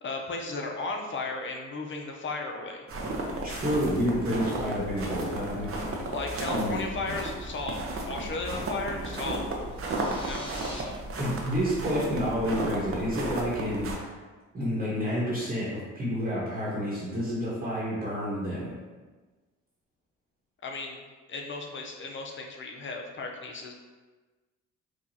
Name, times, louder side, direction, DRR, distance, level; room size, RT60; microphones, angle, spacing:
voice 1, 0.0-2.9 6.1-7.8 8.1-9.5 10.2-10.5 20.6-21.0 21.3-23.7, left 3 dB, 40° left, 2 dB, 0.6 m, -35 dB
sound 1, 2.9-14.0, right 2 dB, 45° right, 0.7 m, -34 dB
voice 2, 3.4-5.7 6.5-7.1 8.5-8.6 11.2-14.1 14.5-18.7, equal, 30° right, -8 dB, 1.2 m, -29 dB
sound 2, 9.7-10.8, left 1 dB, 15° left, 1.0 m, -44 dB
4.9 x 2.4 x 2.7 m, 1.3 s
cardioid pair, 90°, 30 cm